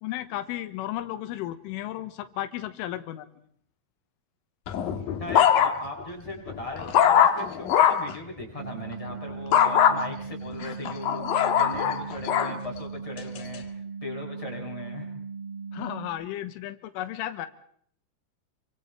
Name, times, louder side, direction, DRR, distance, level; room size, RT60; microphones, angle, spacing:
voice 1, 0.0-3.3 15.7-17.5, left 13 dB, 85° left, 10 dB, 3.7 m, -34 dB
sound 1, 4.7-6.0 6.5-8.1 9.5-10.0 10.6-12.5 13.2-13.6, left 9 dB, 60° left, 2.7 m, -22 dB
voice 2, 5.2-13.6 14.0-15.1, left 2 dB, 5° left, -1 dB, 6.3 m, -38 dB
sound 2, 8.6-16.1, right 5 dB, 50° right, 6.1 m, -38 dB
28.5 x 24.5 x 4.4 m, 0.63 s
omnidirectional pair, 5.6 m